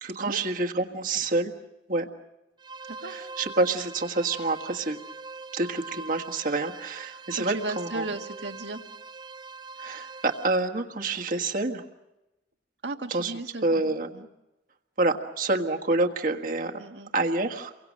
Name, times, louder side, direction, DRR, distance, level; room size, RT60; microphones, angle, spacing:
voice 1, 0.0-1.5 1.9-2.1 3.1-5.0 5.5-8.0 9.8-11.8 13.1-13.3 13.6-14.1 15.0-16.8 17.1-17.7, right 2 dB, 50° right, 3 dB, 1.6 m, -27 dB
sound 1, 2.6-10.5, right 4 dB, 25° right, 0.8 m, -42 dB
voice 2, 7.1-8.8 12.8-14.3 16.8-17.1, right 2 dB, 80° right, 5 dB, 1.9 m, -36 dB
29.0 x 24.0 x 6.4 m, 0.96 s
head